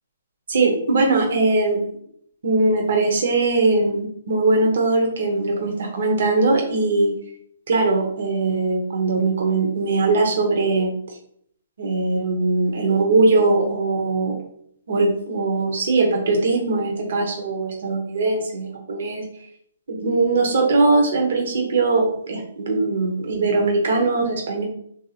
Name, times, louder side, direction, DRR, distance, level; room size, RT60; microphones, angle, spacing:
voice 1, 0.5-1.8 2.4-7.1 7.7-10.9 11.8-14.3 14.9-19.2 19.9-24.6, right 3 dB, 65° right, 1 dB, 0.8 m, -20 dB
3.1 x 2.7 x 2.8 m, 0.67 s
hypercardioid pair, 145°, 0 cm